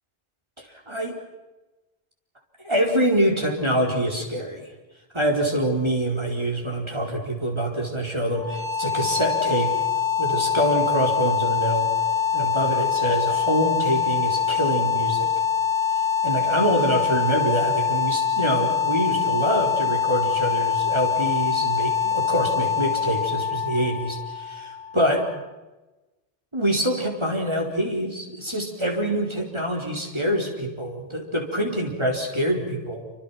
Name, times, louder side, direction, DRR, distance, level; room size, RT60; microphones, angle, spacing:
voice 1, 0.6-1.2 2.6-4.7 5.1-9.7 10.2-11.9 12.3-15.3 16.2-25.3 26.5-33.1, equal, 25° right, 0 dB, 4.8 m, -25 dB
sound 1, 8.3-25.3, left 7 dB, 45° right, 3.2 m, -24 dB
27.5 x 26.5 x 6.0 m, 1.1 s
omnidirectional pair, 1.1 m